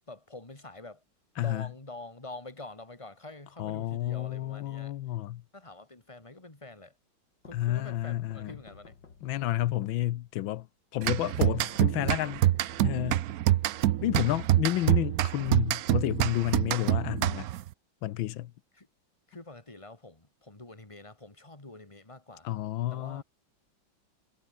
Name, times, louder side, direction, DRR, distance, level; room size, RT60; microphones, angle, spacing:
voice 1, 0.1-1.0 1.4-5.0 5.5-7.0 7.4-8.9 18.7-18.9 19.3-22.5 22.9-23.2, left 2 dB, 15° left, 2.9 m, -46 dB
voice 2, 3.6-5.4 7.5-8.6 9.2-10.7 10.9-12.4 12.8-13.2 14.0-17.5 18.0-18.5 22.4-23.2, left 14 dB, 85° left, 1.5 m, -30 dB
sound 1, 7.5-10.4 11.3-14.7, left 5 dB, 65° left, 3.2 m, -54 dB
sound 2, 11.0-17.7, right 14 dB, 70° right, 0.9 m, -26 dB
omnidirectional pair, 2.1 m